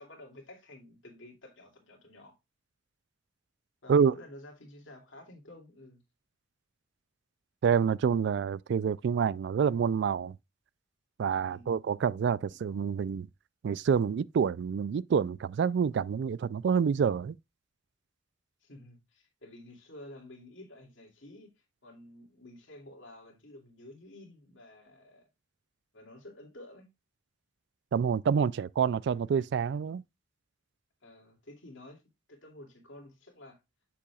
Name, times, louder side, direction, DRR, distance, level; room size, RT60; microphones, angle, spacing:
voice 1, 0.0-2.4 3.8-6.0 11.5-11.8 18.6-21.5 21.8-25.3 25.9-26.9 31.0-32.0 32.3-33.6, left 1 dB, 75° left, 2.5 m, -51 dB
voice 2, 7.6-10.3 11.2-13.3 13.6-17.4 27.9-30.0, right 6 dB, 60° right, 0.3 m, -27 dB
7.6 x 6.9 x 2.3 m
head